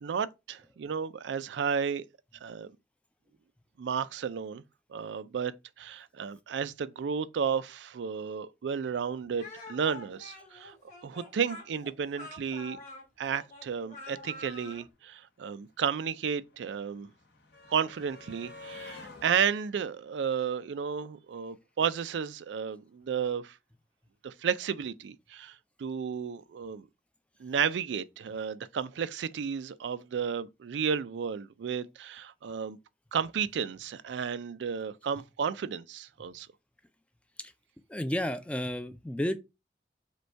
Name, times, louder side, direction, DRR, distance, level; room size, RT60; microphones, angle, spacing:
voice 1, 0.0-2.0 2.4-2.7 3.8-4.6 4.9-5.5 5.8-10.7 11.0-12.8 13.2-17.1 17.7-23.5 24.2-25.5 25.8-26.9 27.4-32.8 33.1-36.5, right 7 dB, 85° right, 0.4 m, -32 dB
Speech, 9.4-14.9, left 2 dB, 45° left, 1.9 m, -46 dB
sound 1, 15.0-21.2 22.4-22.5 22.8-22.9, left 3 dB, 65° left, 1.0 m, -51 dB
voice 2, 37.9-39.4, left 1 dB, 5° left, 0.4 m, -32 dB
5.1 x 2.3 x 4.4 m
head